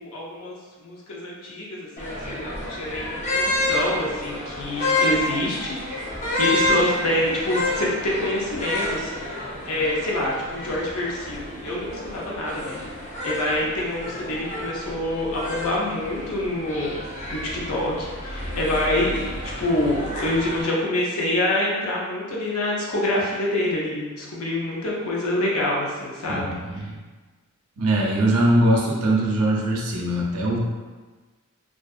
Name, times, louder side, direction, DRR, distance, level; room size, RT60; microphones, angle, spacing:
voice 1, 0.0-5.8 6.4-12.8 13.2-17.0 17.3-26.5 26.8-26.9, left 1 dB, 80° left, -4 dB, 0.6 m, -26 dB
sound 1, 2.0-20.6, left 1 dB, 30° left, 0.5 m, -29 dB
voice 2, 26.3-27.0 27.8-30.6, right 1 dB, 80° right, -2 dB, 0.5 m, -21 dB
2.6 x 2.4 x 2.3 m, 1.4 s
head